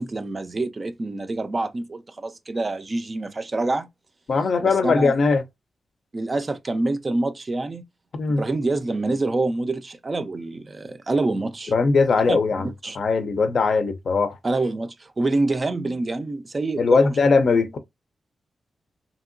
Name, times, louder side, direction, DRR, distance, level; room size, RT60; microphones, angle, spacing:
voice 1, 0.0-3.9 4.6-5.1 6.1-7.8 8.3-11.7 12.3-12.4 12.6-13.0 14.4-17.2, right 2 dB, 30° right, 0.4 m, -26 dB
voice 2, 4.3-5.4 8.1-8.4 11.7-12.7 13.0-14.4 16.8-17.8, left 4 dB, 60° left, 0.5 m, -20 dB
2.8 x 2.7 x 2.5 m
cardioid pair, 95°, 0 cm